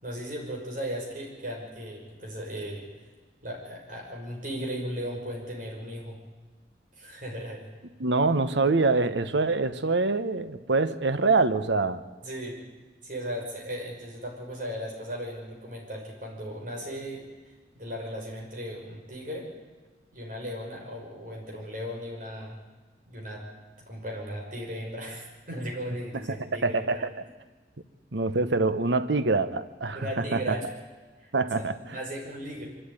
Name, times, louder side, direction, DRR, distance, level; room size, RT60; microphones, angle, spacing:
voice 1, 0.0-2.9 3.4-6.2 6.9-7.6 12.2-12.6 13.0-19.5 20.1-22.6 23.1-23.4 23.9-27.1 29.9-30.7 31.2-32.7, equal, 50° right, -1 dB, 5.8 m, -37 dB
voice 2, 8.0-12.0 26.6-27.0 28.1-30.5 31.3-31.7, right 3 dB, 90° right, 13 dB, 1.1 m, -25 dB
24.0 x 12.5 x 9.8 m, 1.3 s
head